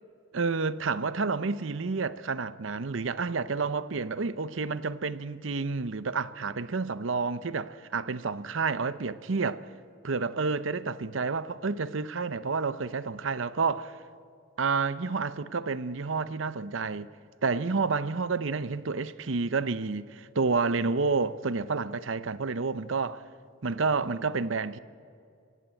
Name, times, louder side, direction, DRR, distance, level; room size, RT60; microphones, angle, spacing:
voice 1, 0.3-9.7 10.0-14.0 14.6-17.1 17.4-23.2 23.6-24.8, right 4 dB, 70° right, 0.7 m, -29 dB
30.0 x 17.0 x 8.4 m
head